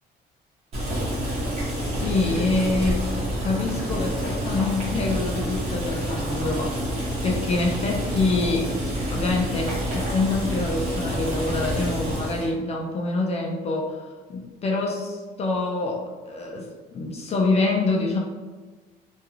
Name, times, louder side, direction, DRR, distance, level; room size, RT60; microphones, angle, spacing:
Boiling, 0.7-12.5, right 1 dB, 40° right, 1.0 m, -28 dB
voice 1, 1.6-3.1 3.4-6.9 7.2-8.7 9.1-14.0 14.3-18.2, left 3 dB, 40° left, -1 dB, 0.4 m, -26 dB
2.4 x 2.3 x 3.0 m, 1.4 s
cardioid pair, 110°, 17 cm